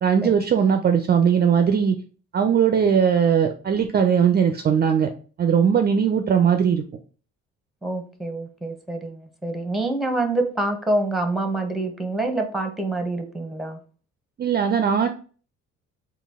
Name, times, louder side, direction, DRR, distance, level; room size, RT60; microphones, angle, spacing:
voice 1, 0.0-2.0 2.3-5.1 5.4-6.8 14.4-15.1, right 7 dB, 35° right, 6 dB, 0.4 m, -19 dB
voice 2, 7.8-13.8, right 2 dB, ahead, 5 dB, 0.8 m, -26 dB
3.9 x 2.3 x 3.5 m, 0.40 s
cardioid pair, 90°, 30 cm